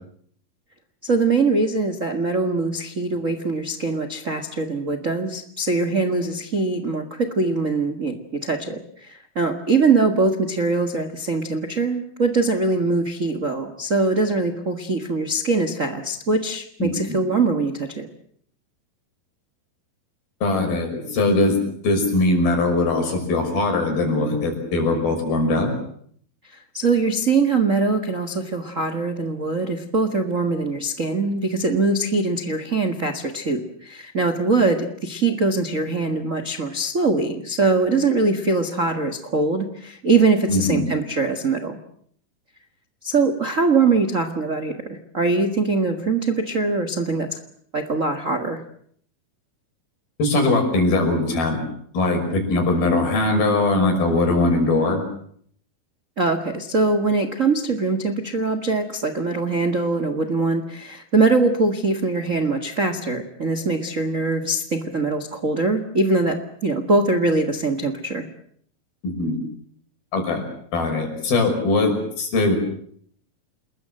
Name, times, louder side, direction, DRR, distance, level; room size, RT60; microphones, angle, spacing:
voice 1, 1.0-18.1 26.7-41.8 43.0-47.4 47.7-48.6 56.2-68.3, right 3 dB, 90° right, 9 dB, 0.7 m, -22 dB
voice 2, 16.8-17.2 20.4-21.6 21.8-25.7 40.5-40.9 50.2-51.6 51.9-55.0 69.0-69.4 70.1-70.4 70.7-72.6, left 2 dB, 70° left, 4 dB, 7.7 m, -21 dB
29.0 x 21.0 x 7.8 m, 0.64 s
omnidirectional pair, 4.5 m